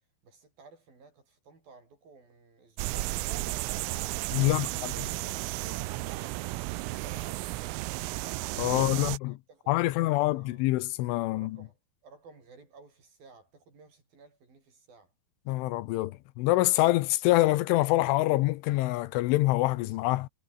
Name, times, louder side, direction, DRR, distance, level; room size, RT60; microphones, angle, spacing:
voice 1, 0.2-3.4 4.4-6.5 6.7-7.5 8.7-10.7 11.3-15.1, right 4 dB, 45° right, 8.6 m, -54 dB
sound 1, 2.8-9.2, right 21 dB, 90° right, 3.4 m, -33 dB
voice 2, 4.3-4.9 8.6-9.3 9.7-11.6 15.5-20.3, left 18 dB, 85° left, 3.2 m, -26 dB
omnidirectional pair, 5.7 m